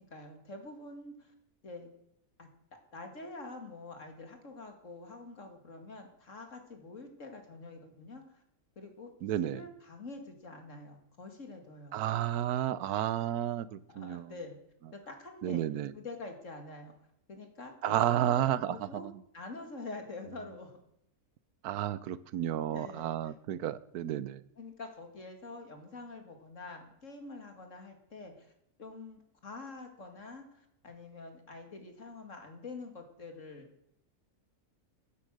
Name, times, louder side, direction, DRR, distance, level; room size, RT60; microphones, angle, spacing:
voice 1, 0.0-1.3 1.6-1.9 2.4-2.5 2.9-8.4 8.8-9.1 9.4-12.0 13.9-14.6 14.9-15.7 15.9-16.9 17.3-19.1 19.3-20.8 22.7-23.3 24.6-28.5 28.8-33.7, left 3 dB, 55° left, 5 dB, 2.7 m, -46 dB
voice 2, 9.2-9.6 11.9-14.3 15.4-15.9 17.8-19.1 21.6-24.4, right 11 dB, 90° right, 18 dB, 1.2 m, -32 dB
13.5 x 10.0 x 6.4 m, 0.75 s
omnidirectional pair, 1.6 m